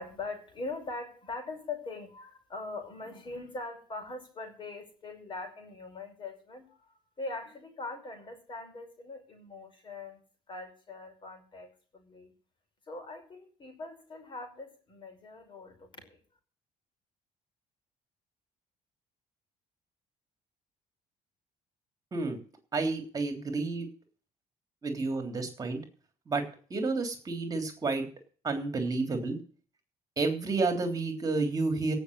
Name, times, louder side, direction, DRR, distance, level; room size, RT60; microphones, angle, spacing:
voice 1, 0.0-10.2 10.5-12.3 12.9-16.2, left 3 dB, 35° left, 8 dB, 5.6 m, -42 dB
voice 2, 22.7-23.9 24.8-25.8 26.3-26.4 26.7-28.1 28.4-29.4 30.2-31.9, right 3 dB, 25° right, 5 dB, 3.4 m, -30 dB
17.5 x 6.3 x 8.3 m, 0.42 s
cardioid pair, 145°, 14 cm